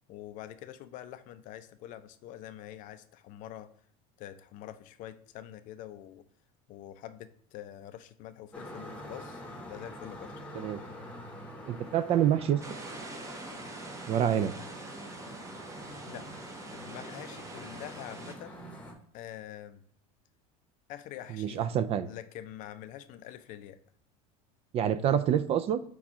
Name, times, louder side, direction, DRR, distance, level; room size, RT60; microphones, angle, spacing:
voice 1, 0.1-3.7 4.2-6.2 6.7-10.4 16.1-16.4 16.7-18.6 19.1-19.8 20.9-21.7 22.0-23.8, left 12 dB, 50° left, 12 dB, 0.4 m, -45 dB
sound 1, 8.5-18.9, equal, 5° left, 1.0 m, -46 dB
voice 2, 11.7-12.6 14.1-14.5 21.3-22.1 24.7-25.8, right 9 dB, 35° right, 12 dB, 0.3 m, -27 dB
sound 2, 12.6-18.3, right 2 dB, 20° right, 0.7 m, -44 dB
5.9 x 2.3 x 3.5 m, 0.67 s
supercardioid pair, 115°, 17 cm